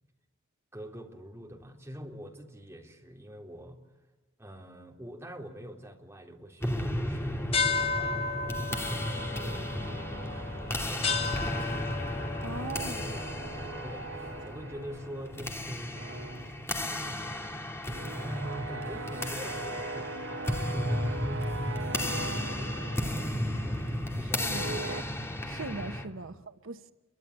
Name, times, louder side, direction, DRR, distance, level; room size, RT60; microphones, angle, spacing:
voice 1, 0.7-3.8 4.4-7.5 7.9-12.1 12.6-16.2 18.2-25.3 26.1-26.4, equal, 15° right, 3.9 m, -45 dB
sound 1, 6.6-26.1, left 1 dB, 10° left, 2.6 m, -34 dB
sound 2, 7.5-14.4, left 4 dB, 30° left, 1.0 m, -34 dB
sound 3, 9.2-11.7 12.0-15.6 15.9-25.0, right 2 dB, 65° right, 1.4 m, -41 dB
voice 2, 12.4-13.1 24.2-24.7 25.5-26.9, right 3 dB, 80° right, 1.2 m, -40 dB
29.0 x 24.0 x 8.4 m
head